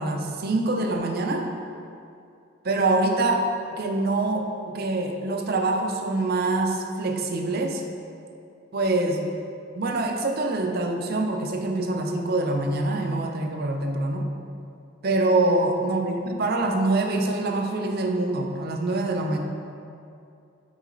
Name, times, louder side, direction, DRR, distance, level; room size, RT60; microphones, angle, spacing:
voice 1, 0.0-1.5 2.6-3.5 3.8-4.5 4.7-7.8 8.7-9.2 9.8-14.3 15.0-19.4, right 2 dB, 45° right, 3 dB, 0.5 m, -25 dB
6.2 x 4.7 x 3.9 m, 2.5 s
head